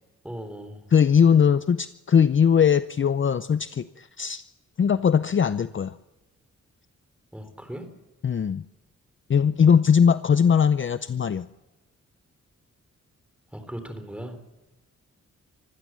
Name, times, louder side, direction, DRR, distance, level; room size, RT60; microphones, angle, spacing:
voice 1, 0.2-0.9 7.3-7.9 13.5-14.4, equal, 5° right, 8 dB, 3.5 m, -38 dB
voice 2, 0.9-4.4 4.8-5.9 8.2-8.6 9.3-11.5, left 7 dB, 40° left, 13 dB, 0.6 m, -20 dB
25.0 x 15.5 x 7.4 m, 1.0 s
wide cardioid pair, 115°, 30 cm